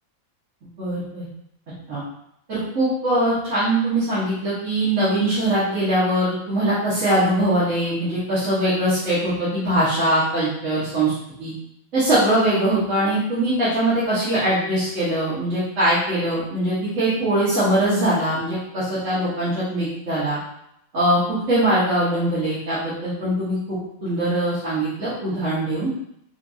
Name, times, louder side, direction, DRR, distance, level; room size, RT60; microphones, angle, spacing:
voice 1, 0.8-1.2 1.9-2.0 2.5-11.1 11.4-11.5 11.9-20.4 20.9-21.2 21.5-25.9, right 1 dB, 65° right, -11 dB, 1.7 m, -22 dB
5.8 x 2.6 x 2.7 m, 0.78 s
omnidirectional pair, 1.4 m